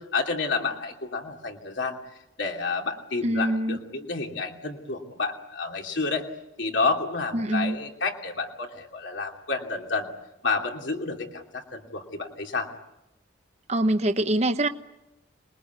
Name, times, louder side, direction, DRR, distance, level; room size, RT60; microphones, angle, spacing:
voice 1, 0.0-2.0 2.4-6.3 6.6-10.1 10.4-12.7, left 4 dB, 70° left, 2 dB, 2.9 m, -30 dB
voice 2, 3.2-3.8 7.3-7.8 13.7-14.7, right 1 dB, 35° right, 9 dB, 0.9 m, -24 dB
27.0 x 21.5 x 9.5 m, 0.92 s
head